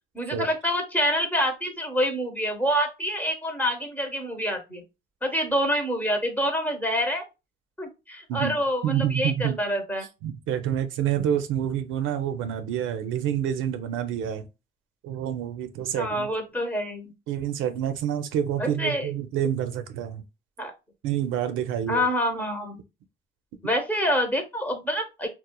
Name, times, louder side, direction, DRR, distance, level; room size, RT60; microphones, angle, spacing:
voice 1, 0.1-4.8 5.2-7.2 7.8-10.1 16.0-17.1 18.6-19.1 20.6-20.7 21.9-22.8 23.6-25.3, equal, 10° left, 0.8 m, -27 dB
voice 2, 8.8-9.6 10.2-14.5 15.0-16.3 17.3-20.2 21.0-22.0, right 10 dB, 90° right, 0.4 m, -28 dB
2.9 x 2.0 x 2.2 m
cardioid pair, 90°, 20 cm